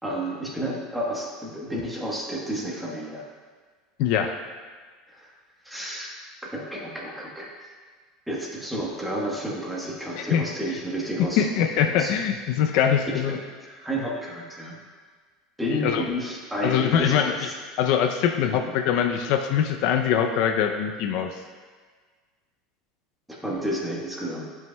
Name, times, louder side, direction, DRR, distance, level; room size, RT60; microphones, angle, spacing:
voice 1, 0.0-3.2 5.1-5.3 5.6-6.1 6.5-7.5 8.3-11.5 11.8-12.1 13.3-14.8 15.6-17.5 18.5-18.8 23.3-24.4, equal, 5° right, -3 dB, 1.1 m, -31 dB
voice 2, 4.0-4.4 10.2-10.4 11.4-13.4 15.7-16.0 16.6-17.5 17.8-21.4, left 8 dB, 60° left, 5 dB, 0.4 m, -23 dB
10.5 x 5.4 x 2.2 m, 1.5 s
supercardioid pair, 155°, 0 cm